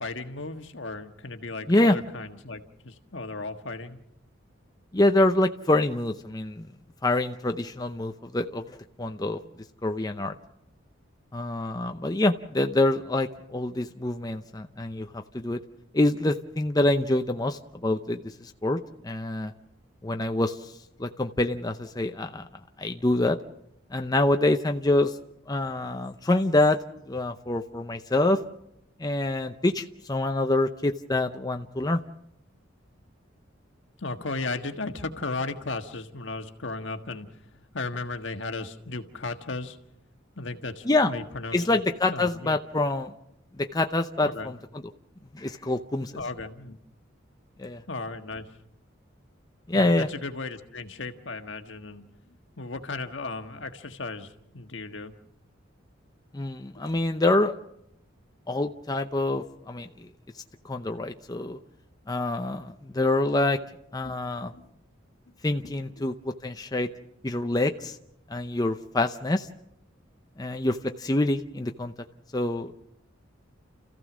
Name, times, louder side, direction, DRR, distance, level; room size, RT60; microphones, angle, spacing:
voice 1, 0.0-4.0 34.0-37.3 37.7-39.8 40.4-41.8 42.1-42.6 44.2-44.5 46.1-46.8 47.9-48.4 49.7-52.1 52.6-55.1 64.0-64.2 64.5-64.7 65.6-66.0, left 3 dB, 65° left, 7 dB, 1.5 m, -35 dB
voice 2, 4.9-6.7 7.0-9.4 9.8-10.3 11.3-15.6 15.9-19.5 20.0-20.7 21.0-22.5 22.8-23.4 23.9-25.2 25.5-26.8 27.1-28.4 29.0-32.0 40.8-41.1 41.5-43.1 43.6-44.8 45.3-46.1 47.6-47.8 49.7-50.1 56.3-57.5 58.5-60.1 60.6-61.6 62.1-63.6 63.9-64.5 65.4-66.9 67.2-68.0 68.3-69.5 70.4-71.9 72.3-72.8, left 2 dB, 20° left, 6 dB, 0.7 m, -26 dB
30.0 x 15.0 x 6.2 m, 0.79 s
head